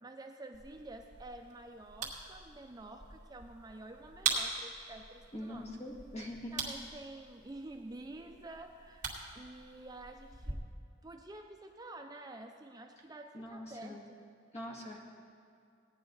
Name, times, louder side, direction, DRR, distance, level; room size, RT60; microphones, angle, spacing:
voice 1, 0.0-5.7 6.5-10.6 11.0-14.2, right 2 dB, 20° right, 4 dB, 0.5 m, -49 dB
sound 1, 0.5-10.5, right 5 dB, 45° right, 2.3 m, -42 dB
voice 2, 5.3-6.6 13.3-14.0 14.5-15.0, left 1 dB, 35° left, -1 dB, 1.9 m, -43 dB
17.0 x 10.0 x 3.9 m, 2.4 s
head